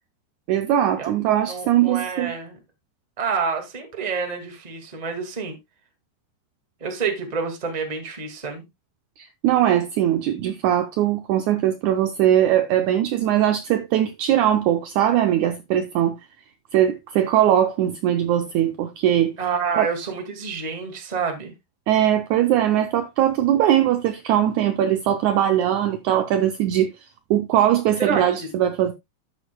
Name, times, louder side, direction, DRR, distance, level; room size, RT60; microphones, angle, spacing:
voice 1, 0.5-2.3 9.2-16.2 16.7-19.3 19.7-19.9 21.9-26.9 27.3-28.9, right 11 dB, 85° right, 1.7 m, -20 dB
voice 2, 1.5-2.6 3.2-5.6 6.8-8.6 19.4-21.5 28.0-28.5, right 5 dB, 20° right, 1.1 m, -28 dB
12.5 x 8.0 x 2.2 m
omnidirectional pair, 4.1 m